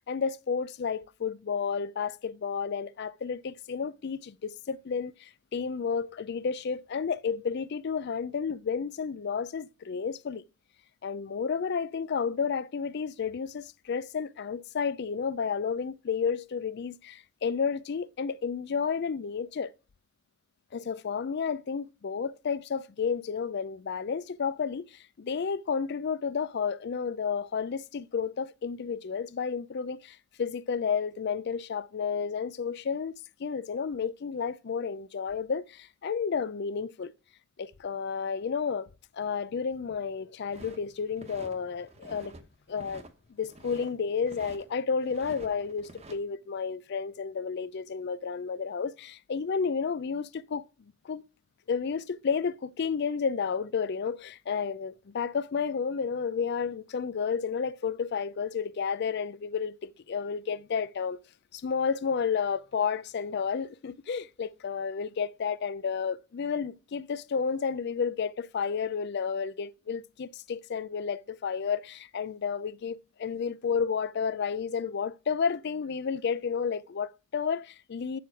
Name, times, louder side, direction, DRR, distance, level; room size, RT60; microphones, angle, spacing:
voice 1, 0.1-10.4 11.0-19.7 20.7-33.1 33.4-37.1 37.6-38.9 39.1-42.3 42.7-43.0 43.4-50.7 51.0-51.2 51.7-61.2 61.5-78.2, left 6 dB, 50° left, 0.4 m, -31 dB
sound 1, 40.5-41.5 41.9-42.4 42.7-43.9 44.2-44.6 45.0-46.2, right 2 dB, 30° right, 1.1 m, -48 dB
7.6 x 7.1 x 4.5 m
head